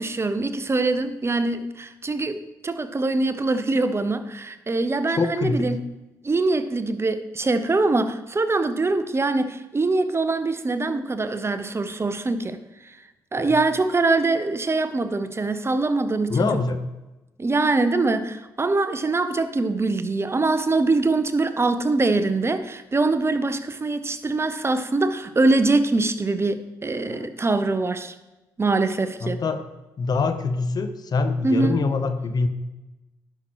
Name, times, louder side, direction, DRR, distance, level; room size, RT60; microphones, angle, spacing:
voice 1, 0.0-5.8 6.2-13.0 13.3-16.6 17.4-28.1 28.6-29.4 31.4-31.8, right 3 dB, 30° right, 11 dB, 0.7 m, -23 dB
voice 2, 5.1-5.7 13.4-13.6 16.3-16.8 27.1-27.3 29.2-29.6 30.0-32.5, left 4 dB, 50° left, 9 dB, 0.8 m, -24 dB
11.5 x 6.0 x 3.0 m, 1.0 s
hypercardioid pair, 45°, 9 cm